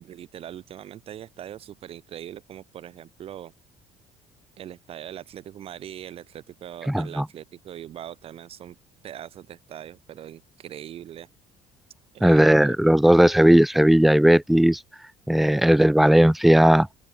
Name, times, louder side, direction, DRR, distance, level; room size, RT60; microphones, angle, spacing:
voice 1, 0.0-3.5 4.6-8.8 9.0-11.3 12.1-12.7 15.5-15.9, right 11 dB, 45° right, 1.0 m, -41 dB
voice 2, 6.9-7.3 12.2-14.8 15.3-16.9, right 1 dB, ahead, 0.3 m, -17 dB
open air
cardioid pair, 140°, 14 cm